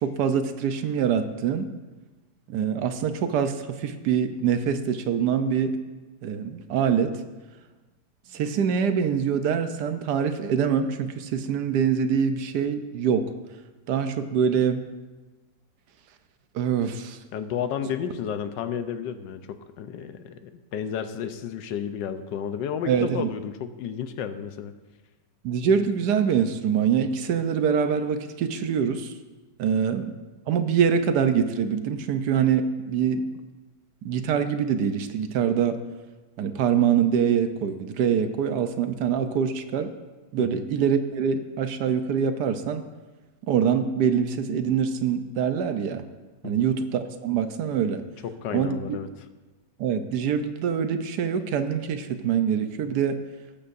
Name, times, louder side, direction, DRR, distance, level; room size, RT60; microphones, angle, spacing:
voice 1, 0.0-1.7 2.5-5.8 6.2-7.2 8.3-13.3 13.9-14.8 16.5-17.2 22.9-23.3 25.4-29.1 29.6-30.1 30.5-33.3 34.0-35.8 36.4-39.9 40.3-42.8 43.4-46.0 46.4-48.0 48.5-49.0 49.8-53.2, right 7 dB, 70° right, 9 dB, 1.2 m, -24 dB
voice 2, 17.3-24.7 29.7-29.8 40.4-40.6 46.4-46.7 48.2-49.1, left 8 dB, 85° left, 9 dB, 1.4 m, -32 dB
19.5 x 8.4 x 2.6 m, 1.2 s
omnidirectional pair, 1.9 m